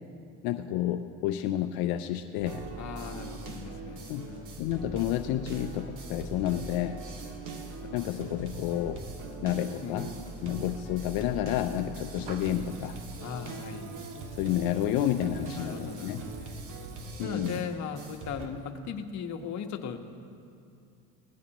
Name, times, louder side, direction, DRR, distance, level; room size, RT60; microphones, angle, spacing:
voice 1, 0.4-2.6 4.1-7.0 7.9-9.0 9.4-10.1 10.4-13.0 14.3-16.2 17.2-17.6, left 12 dB, 75° left, 7 dB, 0.7 m, -30 dB
sound 1, 2.4-15.5, equal, 5° right, 3.8 m, -47 dB
sound 2, 2.5-18.5, right 3 dB, 55° right, 2.3 m, -42 dB
voice 2, 2.8-4.6 7.8-8.1 9.8-10.2 13.2-14.0 15.6-16.6 17.2-20.0, left 6 dB, 50° left, 4 dB, 1.4 m, -38 dB
Water tap faucet / Liquid, 12.2-17.2, right 7 dB, 90° right, 1.1 m, -53 dB
21.0 x 17.5 x 3.0 m, 2.5 s
supercardioid pair, 105°, 37 cm